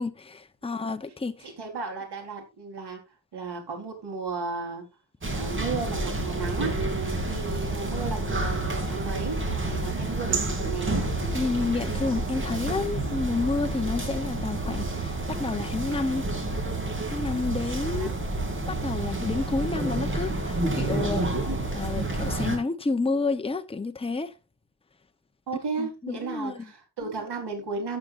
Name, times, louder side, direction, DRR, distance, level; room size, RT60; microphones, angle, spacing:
voice 1, 0.0-1.5 11.3-16.2 17.1-18.1 18.7-21.3 21.7-24.3 25.8-26.7, left 3 dB, 15° left, 0.8 m, -30 dB
voice 2, 1.4-3.0 3.3-4.8 5.4-6.8 7.3-11.1 17.8-18.1 25.5-28.0, right 4 dB, 70° right, 4.3 m, -34 dB
sound 1, 5.2-22.6, right 2 dB, 30° right, 3.1 m, -29 dB
14.5 x 8.9 x 2.6 m
wide cardioid pair, 150°, 41 cm